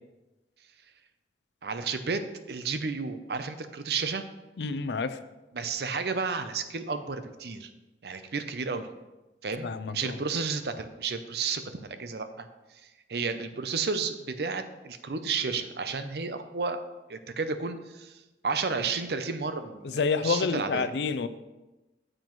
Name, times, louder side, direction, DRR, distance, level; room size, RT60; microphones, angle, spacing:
voice 1, 1.6-2.2 2.5-4.2 5.5-7.7 8.0-8.9 9.4-12.5 13.1-16.8 17.1-18.1 18.4-20.9, right 4 dB, 65° right, 9 dB, 0.6 m, -32 dB
voice 2, 4.6-5.2 9.6-10.2 19.8-21.3, left 4 dB, 75° left, 12 dB, 0.4 m, -28 dB
9.0 x 7.6 x 3.1 m, 1.1 s
head